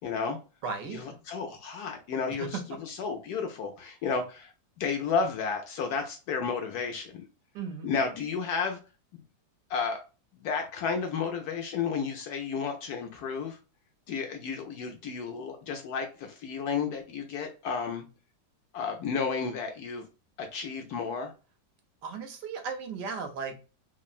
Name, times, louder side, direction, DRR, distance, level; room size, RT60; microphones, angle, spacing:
voice 1, 0.0-0.4 0.9-4.5 4.8-7.2 7.8-8.8 9.1-9.2 9.7-10.0 10.4-13.6 14.1-18.0 18.7-20.0 20.4-21.3, left 5 dB, 75° left, 4 dB, 0.9 m, -32 dB
voice 2, 0.6-1.0 2.3-2.6 7.5-7.9 22.0-23.5, right 5 dB, 70° right, 5 dB, 1.3 m, -36 dB
3.6 x 2.0 x 2.3 m, 0.33 s
omnidirectional pair, 2.0 m